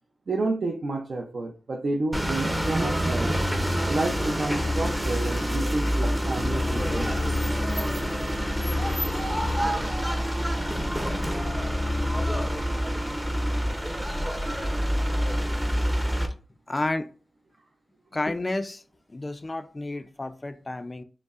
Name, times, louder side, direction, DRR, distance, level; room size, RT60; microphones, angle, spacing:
voice 1, 0.3-3.4 3.9-7.5, right 2 dB, 60° right, 0.5 m, -30 dB
sound 1, 2.1-16.3, equal, 10° right, 0.6 m, -26 dB
voice 2, 14.5-14.9 16.7-17.1 18.1-18.8 19.1-21.0, left 2 dB, 30° left, 0.3 m, -31 dB
5.2 x 2.0 x 2.4 m
cardioid pair, 60°, 0 cm